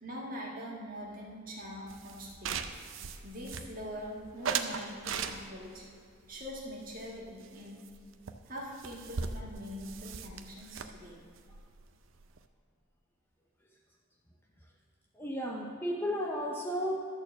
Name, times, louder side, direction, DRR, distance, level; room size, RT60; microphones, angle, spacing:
voice 1, 0.0-2.6 3.2-5.9 6.3-7.8 8.5-11.2, equal, 40° right, -2 dB, 1.6 m, -43 dB
sound 1, 1.9-4.0 4.4-5.8 6.3-7.6 7.9-8.0 8.3-8.4 8.6-12.4, right 6 dB, 65° right, 0.5 m, -39 dB
voice 2, 15.1-17.0, equal, 10° left, 0 dB, 0.6 m, -33 dB
11.5 x 4.4 x 7.4 m, 2.3 s
head